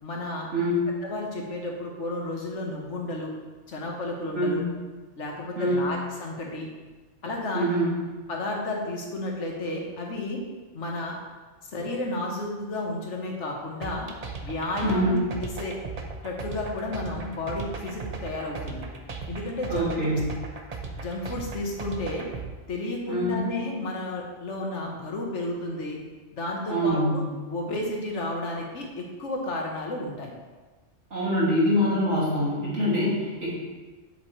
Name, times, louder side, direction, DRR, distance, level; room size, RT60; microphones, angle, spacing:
voice 1, 0.0-0.5 1.0-3.3 3.7-4.6 5.2-6.7 7.2-7.7 8.3-10.4 10.7-11.2 11.7-14.1 14.4-15.7 16.2-18.8 19.3-20.2 21.0-22.3 22.7-26.0 26.3-27.2 27.5-30.3, left 2 dB, 90° left, 0 dB, 1.6 m, -32 dB
voice 2, 0.5-0.9 4.3-4.6 5.6-5.9 7.5-8.0 14.8-15.2 19.7-20.3 23.1-23.4 26.7-27.1 31.1-33.5, equal, 85° right, -7 dB, 2.8 m, -24 dB
sound 1, 13.8-22.5, right 4 dB, 40° right, 0.7 m, -36 dB
7.7 x 7.1 x 3.2 m, 1.3 s
omnidirectional pair, 1.2 m